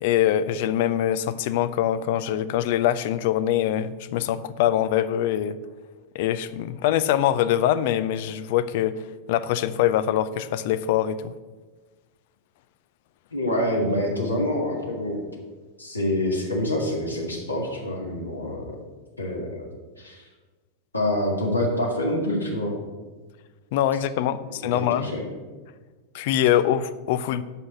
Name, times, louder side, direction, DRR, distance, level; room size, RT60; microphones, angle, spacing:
voice 1, 0.0-5.6 6.1-8.9 9.3-11.3 23.7-25.1 26.1-27.4, left 11 dB, 50° left, 14 dB, 0.5 m, -23 dB
voice 2, 13.3-15.2 15.8-18.7 19.2-19.7 20.0-20.3 20.9-22.8 24.7-25.2, left 1 dB, 85° left, -2 dB, 1.9 m, -26 dB
8.1 x 6.3 x 7.0 m, 1.3 s
figure-of-eight pair, 90°, 0 cm